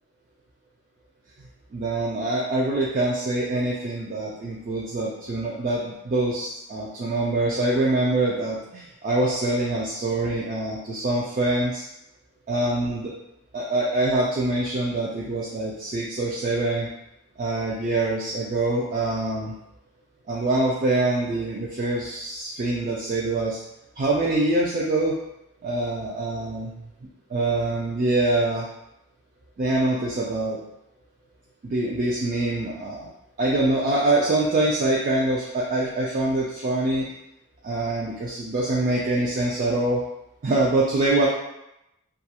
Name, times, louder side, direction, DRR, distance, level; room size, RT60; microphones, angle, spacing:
voice 1, 1.7-11.8 12.5-13.1 13.5-16.9 17.4-19.5 20.3-23.6 24.0-25.2 25.6-26.9 27.3-28.7 29.6-30.6 31.6-33.1 33.4-37.1 37.6-40.0 40.4-41.3, right 2 dB, 40° right, -5 dB, 0.3 m, -24 dB
2.3 x 2.3 x 2.8 m, 0.86 s
head